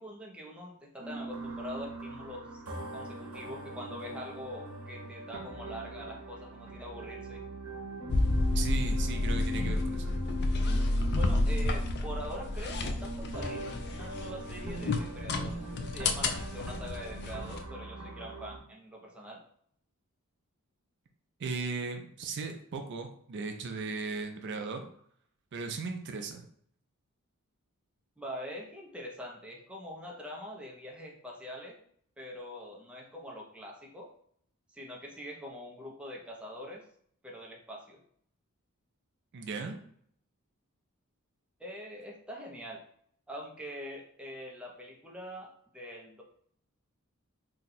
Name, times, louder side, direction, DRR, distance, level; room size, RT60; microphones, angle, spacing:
voice 1, 0.0-2.6 2.9-7.4 11.1-19.4 28.2-31.8 32.2-34.1 34.7-36.8 37.2-38.0 41.6-42.8 43.3-46.2, equal, 5° right, -2 dB, 0.5 m, -44 dB
sound 1, 1.0-18.6, equal, 70° right, 0.8 m, -41 dB
sound 2, 8.1-17.7, left 2 dB, 50° left, 0.4 m, -31 dB
voice 2, 8.5-10.1 21.4-24.9 25.5-26.4 39.3-39.8, right 4 dB, 55° right, 5 dB, 0.4 m, -37 dB
2.7 x 2.2 x 3.9 m, 0.63 s
head